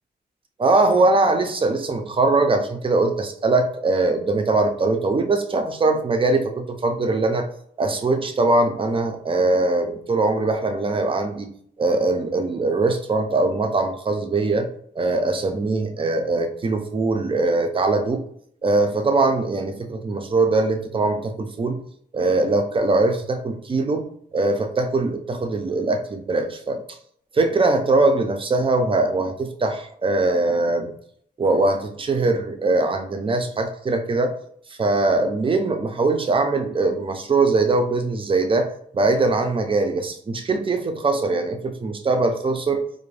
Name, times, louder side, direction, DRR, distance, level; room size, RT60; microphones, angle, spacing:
voice 1, 0.6-7.5 7.8-11.5 11.8-14.7 15.0-18.2 18.6-21.8 22.1-24.1 24.3-26.8 27.3-30.9 31.4-34.3 34.8-38.7 38.9-42.8, right 3 dB, 30° right, 6 dB, 0.4 m, -21 dB
2.4 x 2.0 x 3.1 m, 0.64 s
wide cardioid pair, 140°, 18 cm